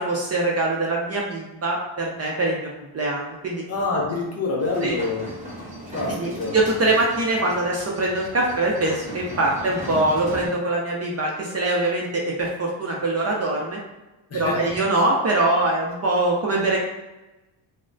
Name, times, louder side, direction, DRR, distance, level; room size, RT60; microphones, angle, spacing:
voice 1, 0.0-3.6 4.8-5.0 6.1-13.8 14.3-16.8, right 2 dB, 35° right, -2 dB, 0.5 m, -23 dB
voice 2, 3.7-5.3 5.9-6.6 14.3-14.6, left 3 dB, 30° left, -3 dB, 0.7 m, -26 dB
sound 1, 4.6-10.5, equal, 15° right, 1.0 m, -37 dB
3.1 x 2.1 x 2.6 m, 1.0 s
cardioid pair, 115°, 47 cm